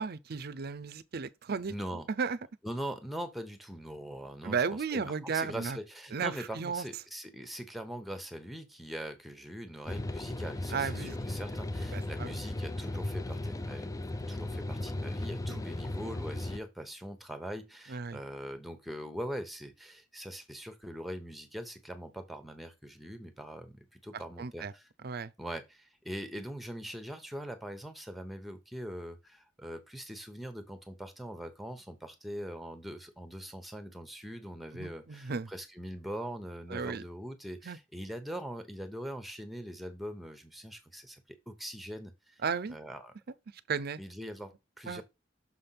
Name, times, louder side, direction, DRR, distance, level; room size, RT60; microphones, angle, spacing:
voice 1, 0.0-1.7 2.1-2.4 4.4-5.8 6.1-6.8 10.7-11.1 11.9-12.4 15.5-15.6 17.9-18.2 24.1-24.7 25.0-25.3 34.7-35.5 36.7-37.0 37.6-37.8 42.4-42.8 43.7-44.0 44.9-45.0, right 5 dB, 55° right, 0.5 m, -34 dB
voice 2, 1.7-2.1 2.6-4.6 4.9-13.9 14.3-24.8 25.4-42.4 42.7-43.1 44.0-45.0, equal, ahead, 1.0 m, -42 dB
sound 1, 9.9-16.6, left 1 dB, 20° left, 0.4 m, -36 dB
6.3 x 3.4 x 5.8 m
head